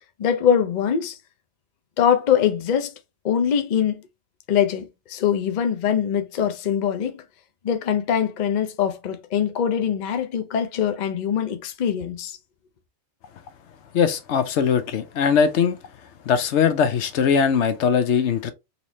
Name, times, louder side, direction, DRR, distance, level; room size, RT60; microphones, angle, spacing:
voice 1, 0.2-1.2 2.0-2.9 3.2-4.0 4.5-7.2 7.6-12.4, left 8 dB, 50° left, 0.6 m, -23 dB
voice 2, 13.9-15.8 16.3-18.5, left 6 dB, 80° left, 0.9 m, -20 dB
4.2 x 3.1 x 2.7 m
omnidirectional pair, 1.2 m